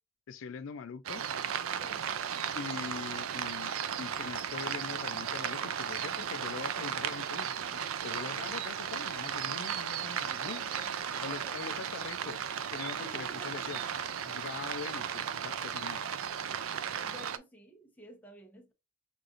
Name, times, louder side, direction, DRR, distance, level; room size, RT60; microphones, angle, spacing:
voice 1, 0.3-1.3 2.5-10.9 11.2-12.4 12.7-13.8 14.3-16.0, left 6 dB, 70° left, 0.3 m, -43 dB
sound 1, 1.1-17.4, right 8 dB, 80° right, 0.4 m, -35 dB
voice 2, 10.2-11.6 13.0-14.3 16.9-18.7, equal, 10° left, 0.9 m, -51 dB
6.3 x 2.5 x 2.5 m
head